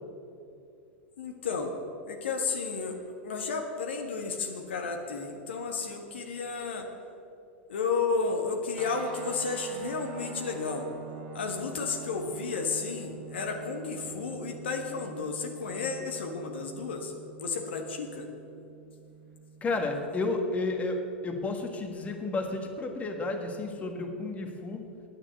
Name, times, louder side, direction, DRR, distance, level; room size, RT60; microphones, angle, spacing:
voice 1, 1.2-1.7 2.1-3.0 3.2-6.9 7.7-10.9 11.3-17.1 17.4-18.3, left 4 dB, 70° left, 3 dB, 1.4 m, -32 dB
sound 1, 8.8-20.0, right 5 dB, 45° right, 1.6 m, -46 dB
voice 2, 19.6-24.8, left 2 dB, 20° left, 4 dB, 1.6 m, -32 dB
9.7 x 9.7 x 8.1 m, 2.6 s
figure-of-eight pair, 90°, 6 cm